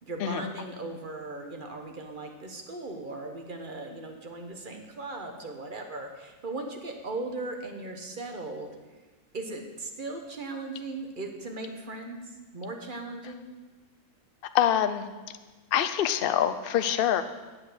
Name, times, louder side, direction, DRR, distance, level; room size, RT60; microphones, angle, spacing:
voice 1, 0.0-8.7 9.3-12.2 12.5-13.5, right 2 dB, 40° right, 3 dB, 1.2 m, -38 dB
voice 2, 14.5-15.1 15.7-17.2, left 10 dB, 60° left, 9 dB, 0.6 m, -25 dB
8.1 x 7.7 x 6.7 m, 1.3 s
omnidirectional pair, 1.5 m